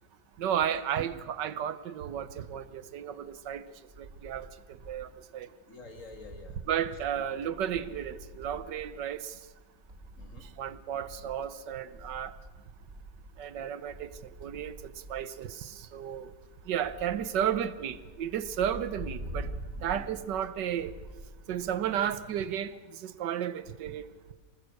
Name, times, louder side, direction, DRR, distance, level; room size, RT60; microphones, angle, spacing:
voice 1, 0.4-3.6 4.0-5.5 6.7-9.3 10.6-12.3 13.4-14.1 14.4-16.3 16.7-19.5 19.8-20.9 21.5-24.1, right 9 dB, 80° right, 1.5 m, -33 dB
sound 1, 3.2-5.2 5.5-5.6 5.9-22.2, right 1 dB, 35° right, 2.7 m, -46 dB
voice 2, 5.7-7.0 10.2-10.5 17.1-17.2 19.7-20.1, left 3 dB, 45° left, 2.7 m, -50 dB
24.5 x 19.5 x 6.5 m
omnidirectional pair, 1.9 m